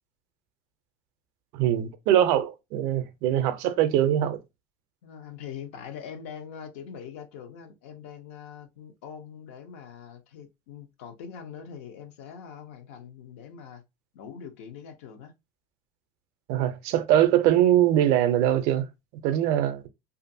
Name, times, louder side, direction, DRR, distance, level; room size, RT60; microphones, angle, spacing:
voice 1, 1.5-4.4 16.5-19.9, right 11 dB, 60° right, 0.4 m, -23 dB
voice 2, 5.0-13.8 14.1-15.3, left 7 dB, 80° left, 0.5 m, -43 dB
2.6 x 2.4 x 2.5 m
supercardioid pair, 140°, 7 cm